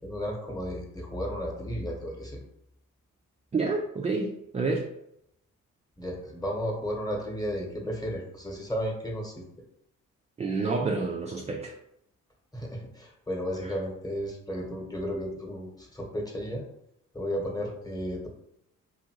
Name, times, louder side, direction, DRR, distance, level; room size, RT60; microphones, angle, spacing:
voice 1, 0.0-2.4 6.0-9.4 12.5-16.6 17.1-18.3, equal, 10° left, -1 dB, 1.0 m, -33 dB
voice 2, 3.5-4.9 10.4-11.8 13.6-13.8, right 3 dB, 20° right, 1 dB, 0.3 m, -29 dB
2.8 x 2.5 x 2.8 m, 0.79 s
supercardioid pair, 65°, 34 cm